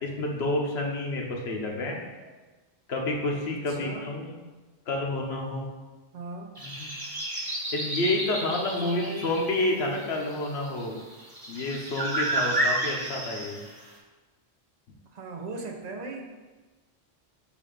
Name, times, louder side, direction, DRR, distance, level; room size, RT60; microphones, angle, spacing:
voice 1, 0.0-2.0 2.9-4.4 4.9-5.7 6.6-6.9 7.7-11.0 11.5-13.6, left 2 dB, 90° left, 0 dB, 1.2 m, -29 dB
voice 2, 3.7-4.1 6.1-6.6 8.6-9.4 15.1-16.2, right 3 dB, 45° right, 3 dB, 0.7 m, -38 dB
sound 1, 6.6-13.9, right 1 dB, 20° right, 1.2 m, -31 dB
7.0 x 2.7 x 5.0 m, 1.3 s
omnidirectional pair, 1.0 m